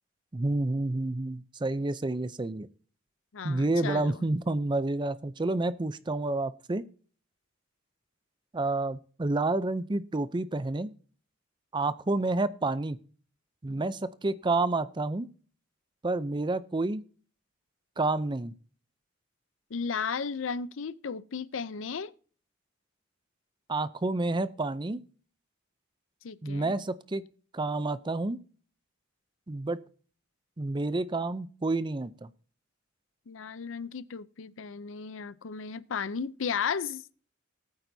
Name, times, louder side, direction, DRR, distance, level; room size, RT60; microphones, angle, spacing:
voice 1, 0.3-2.7 3.4-6.8 8.5-10.9 11.7-13.0 13.6-15.3 16.0-17.0 18.0-18.5 23.7-25.0 26.4-27.2 27.5-28.4 29.5-29.8 30.6-32.3, right 2 dB, 25° right, 0.5 m, -29 dB
voice 2, 3.3-4.2 19.7-22.1 26.2-26.7 33.3-37.0, left 6 dB, 70° left, 0.5 m, -34 dB
19.0 x 8.9 x 2.7 m
head